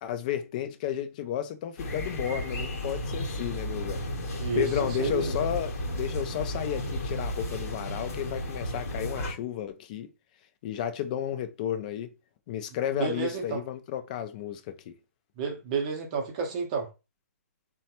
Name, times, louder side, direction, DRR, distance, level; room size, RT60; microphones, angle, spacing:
voice 1, 0.0-4.2 4.5-10.1 10.6-12.1 12.5-15.0, left 10 dB, 30° left, 0.3 m, -32 dB
sound 1, 1.8-9.3, left 1 dB, 60° left, 0.9 m, -33 dB
voice 2, 4.4-5.3 13.0-13.6 15.4-16.9, right 5 dB, 30° right, 0.6 m, -30 dB
3.1 x 2.2 x 2.8 m
hypercardioid pair, 140°, 9 cm